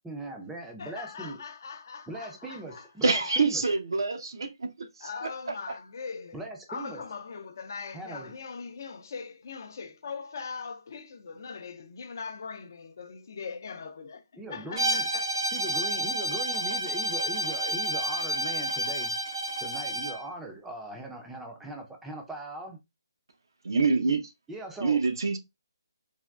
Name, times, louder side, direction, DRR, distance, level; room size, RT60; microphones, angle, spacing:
voice 1, 0.0-1.4 2.1-3.6 6.3-7.0 7.9-8.3 14.4-15.1 15.5-22.8 24.5-25.0, right 2 dB, 5° right, 0.5 m, -40 dB
voice 2, 0.8-2.8 3.3-3.4 5.0-6.4 6.7-14.2 14.5-15.3, left 5 dB, 50° left, 0.4 m, -40 dB
voice 3, 3.0-5.8 23.6-24.3 24.8-25.4, right 4 dB, 70° right, 0.6 m, -27 dB
Bowed string instrument, 14.8-20.2, right 1 dB, 90° right, 1.1 m, -30 dB
3.4 x 2.2 x 2.2 m
hypercardioid pair, 160°, 2 cm